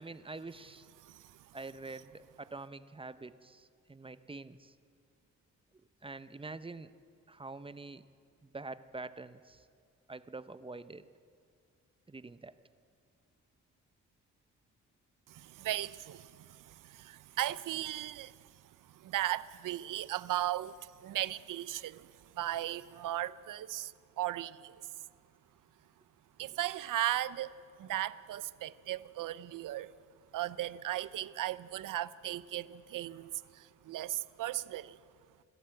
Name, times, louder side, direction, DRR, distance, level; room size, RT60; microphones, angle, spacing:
voice 1, 0.0-0.9 1.5-4.7 6.0-6.9 7.3-8.0 8.4-9.6 10.1-11.0 12.1-12.5, right 3 dB, 15° right, 0.7 m, -46 dB
voice 2, 1.0-1.5 15.3-18.4 18.9-24.8 26.4-29.9 30.3-35.0, right 14 dB, 90° right, 0.6 m, -37 dB
27.5 x 12.5 x 7.8 m
cardioid pair, 100°, 31 cm